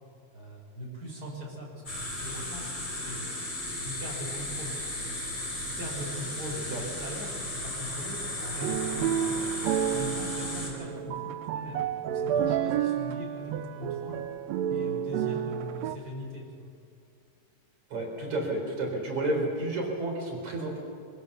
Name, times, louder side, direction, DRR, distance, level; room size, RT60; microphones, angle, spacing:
voice 1, 0.3-2.7 2.9-5.2 5.6-9.5 9.9-14.2 14.7-16.7, equal, 25° right, -3 dB, 5.7 m, -41 dB
sound 1, 1.9-10.7, left 1 dB, 25° left, 4.7 m, -35 dB
sound 2, 8.4-16.0, right 9 dB, 75° right, 1.6 m, -30 dB
voice 2, 17.9-20.8, right 2 dB, 60° right, -1 dB, 5.4 m, -31 dB
24.5 x 16.0 x 6.9 m, 2.4 s
omnidirectional pair, 3.8 m